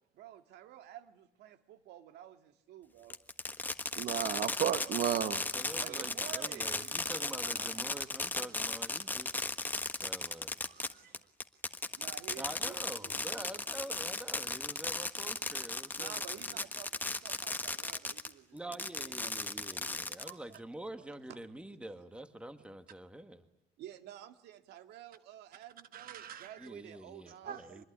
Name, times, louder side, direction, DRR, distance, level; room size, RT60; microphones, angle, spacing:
voice 1, 0.1-3.2 5.8-8.0 8.4-8.6 12.0-13.6 14.1-14.2 16.0-19.9 21.3-21.4 23.8-27.7, right 12 dB, 80° right, 2.1 m, -51 dB
Fireworks, 3.1-18.3 18.7-20.6, left 2 dB, 10° left, 1.4 m, -36 dB
voice 2, 4.0-5.4 5.9-6.1 20.3-20.4 25.9-26.5 27.5-27.8, right 10 dB, 60° right, 1.0 m, -34 dB
voice 3, 5.5-9.3 10.0-10.5 12.4-16.6 18.5-23.4 26.6-27.8, right 1 dB, 5° right, 1.6 m, -46 dB
26.0 x 21.0 x 9.9 m
cardioid pair, 110°, 17 cm